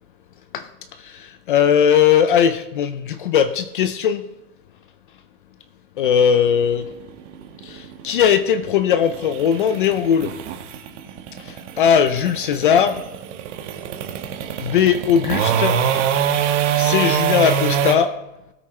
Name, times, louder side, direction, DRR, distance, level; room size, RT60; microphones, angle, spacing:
voice 1, 1.0-4.2 6.0-6.9 7.6-10.3 11.4-13.0 14.6-15.8 16.7-18.1, left 8 dB, 35° left, 0.5 m, -19 dB
sound 1, 6.0-17.9, right 9 dB, 50° right, 1.5 m, -24 dB
19.5 x 8.5 x 3.2 m
supercardioid pair, 155°, 46 cm